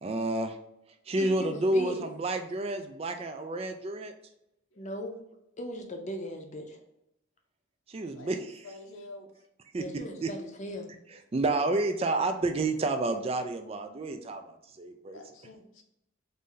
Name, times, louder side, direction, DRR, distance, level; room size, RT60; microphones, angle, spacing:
voice 1, 0.0-0.6 1.1-4.1 7.9-8.5 9.7-9.8 10.2-10.3 11.3-15.2, right 2 dB, 30° right, 7 dB, 0.3 m, -30 dB
voice 2, 1.2-2.0 4.8-5.1 5.6-6.8 9.8-10.9, equal, 35° left, 4 dB, 0.6 m, -38 dB
voice 3, 8.1-9.4 15.1-15.8, left 2 dB, 85° left, 3 dB, 0.8 m, -48 dB
4.1 x 2.6 x 3.8 m, 0.84 s
head